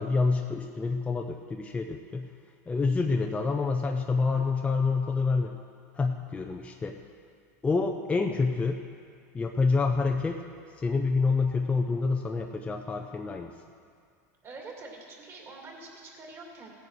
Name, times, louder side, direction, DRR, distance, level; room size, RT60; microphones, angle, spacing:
voice 1, 0.0-2.3 2.7-5.5 6.0-7.0 7.6-8.8 9.3-10.4 10.8-13.5, left 4 dB, 15° left, 2 dB, 0.6 m, -27 dB
voice 2, 14.4-16.7, right 3 dB, 30° right, 0 dB, 2.5 m, -45 dB
16.0 x 9.9 x 4.7 m, 2.2 s
supercardioid pair, 125°, 9 cm